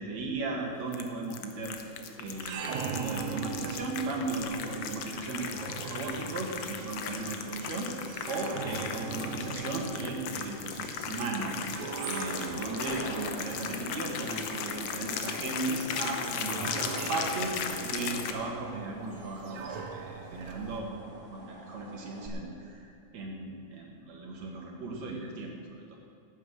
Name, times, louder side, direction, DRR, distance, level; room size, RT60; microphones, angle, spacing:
voice 1, 0.0-1.8 2.2-11.6 12.0-26.0, right 3 dB, 65° right, 0 dB, 3.1 m, -36 dB
sound 1, 0.9-18.3, left 7 dB, 70° left, 1.8 m, -37 dB
sound 2, 2.2-20.8, right 6 dB, 85° right, 2.5 m, -41 dB
sound 3, 11.6-22.3, right 1 dB, 25° right, 2.8 m, -48 dB
15.0 x 8.9 x 6.5 m, 2.5 s
omnidirectional pair, 3.4 m